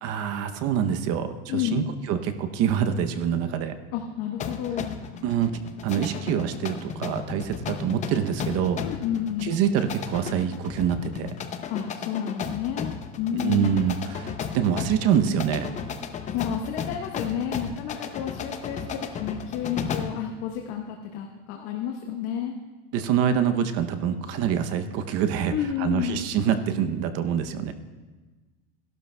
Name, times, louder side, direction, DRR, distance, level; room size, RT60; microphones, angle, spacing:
voice 1, 0.0-3.7 5.2-5.5 5.8-8.8 9.4-11.3 13.4-15.7 22.9-27.7, right 8 dB, 45° right, 9 dB, 0.7 m, -25 dB
voice 2, 1.5-1.9 3.9-5.0 8.8-9.6 11.7-13.8 16.3-22.5 25.5-26.3, left 9 dB, 60° left, 2 dB, 1.1 m, -31 dB
sound 1, 4.4-20.2, left 7 dB, 20° left, 0.5 m, -35 dB
16.0 x 12.0 x 2.2 m, 1.3 s
supercardioid pair, 145°, 36 cm